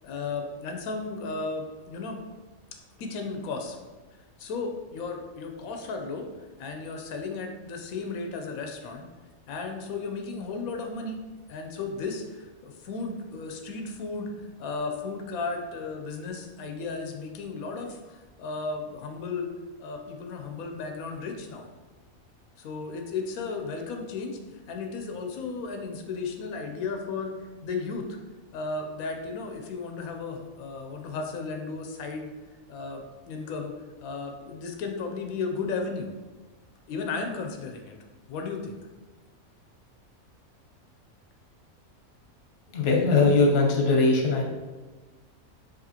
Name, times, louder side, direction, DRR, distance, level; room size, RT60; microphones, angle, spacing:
voice 1, 0.0-2.2 3.0-3.9 4.4-6.3 6.6-9.1 9.5-11.2 11.5-19.5 19.8-21.7 22.6-28.1 28.5-32.3 32.7-33.7 34.0-36.1 36.9-37.9 38.3-38.8, left 4 dB, 90° left, 4 dB, 1.0 m, -34 dB
voice 2, 42.7-44.4, left 3 dB, 55° left, 0 dB, 1.0 m, -20 dB
4.9 x 3.0 x 2.8 m, 1.3 s
omnidirectional pair, 1.4 m